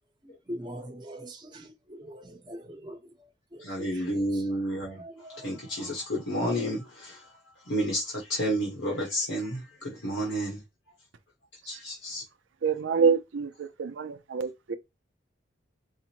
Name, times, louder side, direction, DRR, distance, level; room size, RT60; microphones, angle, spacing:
voice 1, 0.5-3.1 3.5-4.0 4.3-4.4 5.0-5.5, equal, 25° right, 0.9 m, -42 dB
voice 2, 3.6-5.0 5.3-7.3 7.7-10.6 11.6-12.2, equal, 80° left, 1.2 m, -31 dB
voice 3, 12.6-14.7, right 5 dB, 80° right, 0.5 m, -27 dB
4.8 x 2.1 x 2.9 m
head